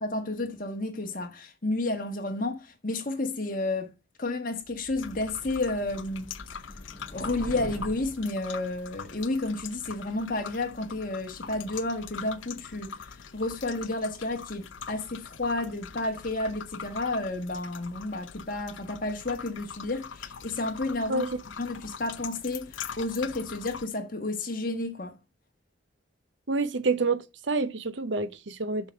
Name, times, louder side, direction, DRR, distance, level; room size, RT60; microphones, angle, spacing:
voice 1, 0.0-3.9 4.2-6.6 7.1-12.9 13.3-21.2 21.6-25.1, left 2 dB, 45° left, 1.5 m, -31 dB
sound 1, 4.7-8.3, equal, 10° left, 0.9 m, -43 dB
sound 2, 5.0-23.9, left 7 dB, 80° left, 0.6 m, -43 dB
voice 2, 26.5-28.9, right 3 dB, 70° right, 0.7 m, -28 dB
7.1 x 5.3 x 4.4 m
head